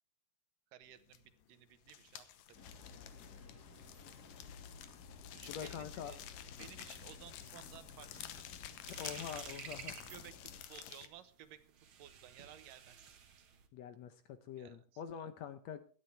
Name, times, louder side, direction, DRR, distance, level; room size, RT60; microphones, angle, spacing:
voice 1, 0.7-2.7 5.3-6.2 6.6-8.5 10.1-11.6 12.0-13.5 14.6-14.8, right 11 dB, 85° right, 11 dB, 2.8 m, -56 dB
sound 1, 1.1-1.4 1.7-11.1, left 11 dB, 85° left, 2.7 m, -51 dB
sound 2, 2.5-10.6, left 5 dB, 35° left, 2.1 m, -55 dB
voice 2, 5.5-6.1 9.0-10.0 13.7-15.9, left 8 dB, 70° left, 11 dB, 1.7 m, -45 dB
sound 3, 8.6-13.7, right 7 dB, 50° right, 1.8 m, -52 dB
17.0 x 12.0 x 3.3 m, 0.40 s
omnidirectional pair, 3.8 m